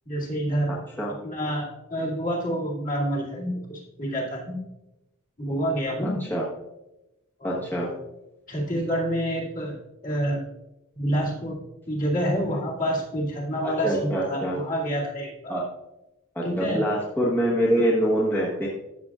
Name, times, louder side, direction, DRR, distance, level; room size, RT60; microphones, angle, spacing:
voice 1, 0.0-0.8 1.1-4.6 5.4-6.3 7.4-8.0 8.5-9.8 10.0-10.4 10.9-11.6 11.9-15.5 16.4-16.8, equal, 35° left, -4 dB, 2.4 m, -28 dB
voice 2, 0.7-1.1 6.0-6.4 7.4-7.9 13.8-14.6 15.5-15.6 16.3-18.7, equal, 10° left, -6 dB, 1.3 m, -25 dB
13.5 x 6.8 x 2.4 m, 0.94 s
head